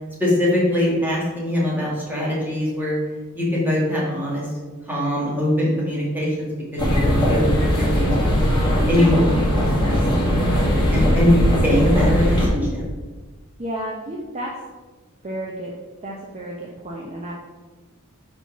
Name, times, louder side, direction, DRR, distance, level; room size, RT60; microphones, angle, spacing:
voice 1, 0.2-3.0 3.4-4.5 4.9-8.5 8.9-10.0 10.2-10.5 10.9-11.4 11.6-12.8, left 1 dB, 10° right, -6 dB, 1.8 m, -22 dB
sound 1, 6.8-12.5, equal, 20° left, 1.6 m, -19 dB
voice 2, 13.6-14.5 15.2-15.7 16.0-17.3, right 1 dB, 30° right, -3 dB, 0.7 m, -31 dB
4.5 x 4.2 x 5.8 m, 1.3 s
head